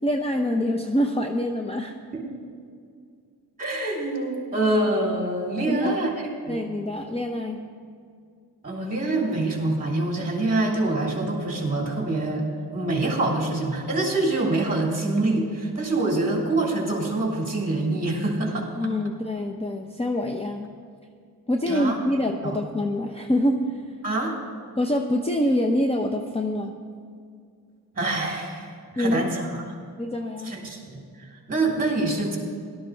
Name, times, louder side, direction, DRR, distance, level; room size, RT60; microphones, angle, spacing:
voice 1, 0.0-1.9 5.7-5.9 6.5-7.6 18.8-20.7 21.5-23.8 24.8-26.7 29.0-29.3 30.0-30.5, left 1 dB, 15° left, 3 dB, 0.7 m, -25 dB
voice 2, 3.6-6.6 8.6-12.5 12.7-18.7 21.7-21.9 22.4-22.6 24.0-24.3 28.0-29.6 30.4-32.4, right 2 dB, 20° right, -3 dB, 3.5 m, -25 dB
17.5 x 12.5 x 3.3 m, 2.2 s
wide cardioid pair, 95°, 40 cm